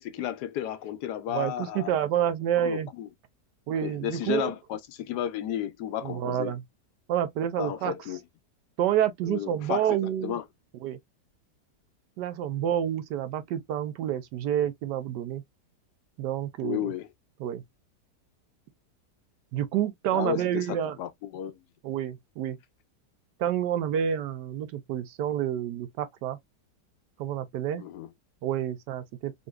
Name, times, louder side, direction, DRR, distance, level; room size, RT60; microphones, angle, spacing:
voice 1, 0.0-1.9 2.6-3.1 3.8-6.5 7.6-8.2 9.3-10.0 10.2-10.4 16.6-17.1 20.1-21.6 27.8-28.1, left 11 dB, 75° left, 1.2 m, -33 dB
voice 2, 1.3-2.9 3.7-4.5 6.0-6.6 7.1-7.9 8.8-10.3 10.8-11.0 12.2-15.4 16.2-16.9 17.4-17.6 19.5-21.0 21.8-22.6 23.4-26.4 27.2-27.8 28.4-29.3, right 10 dB, 85° right, 1.2 m, -28 dB
3.8 x 2.7 x 2.2 m
omnidirectional pair, 1.8 m